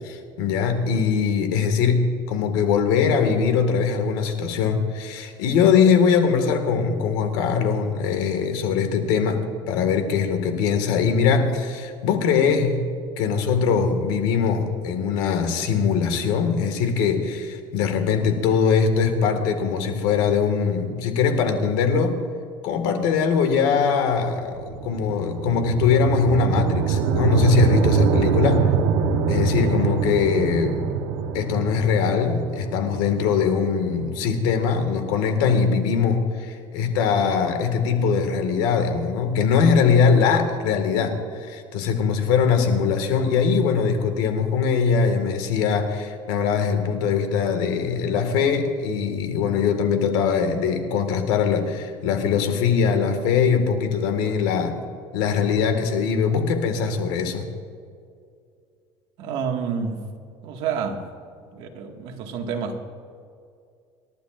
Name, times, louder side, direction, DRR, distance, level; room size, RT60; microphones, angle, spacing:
voice 1, 0.0-12.8 13.2-22.2 22.6-28.7 29.3-30.9 31.3-54.8 55.1-57.5, left 6 dB, 85° left, 6 dB, 1.9 m, -21 dB
sound 1, 24.3-34.6, right 6 dB, 90° right, 1.2 m, -24 dB
voice 2, 29.6-30.1 59.2-60.0 60.4-61.1 61.5-62.8, right 5 dB, 60° right, 2 dB, 1.9 m, -29 dB
27.0 x 12.0 x 2.5 m, 2.3 s
cardioid pair, 140°, 10 cm